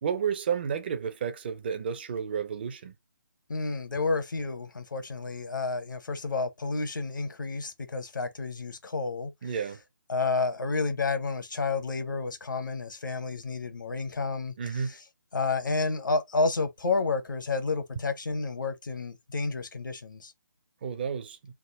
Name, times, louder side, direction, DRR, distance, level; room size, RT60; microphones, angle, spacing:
voice 1, 0.0-2.9 9.4-9.8 14.6-14.9 20.8-21.4, right 7 dB, 30° right, 0.5 m, -31 dB
voice 2, 3.5-9.6 10.1-15.0 15.3-20.3, left 3 dB, 70° left, 0.9 m, -30 dB
3.5 x 2.0 x 3.9 m
figure-of-eight pair, 150°, 11 cm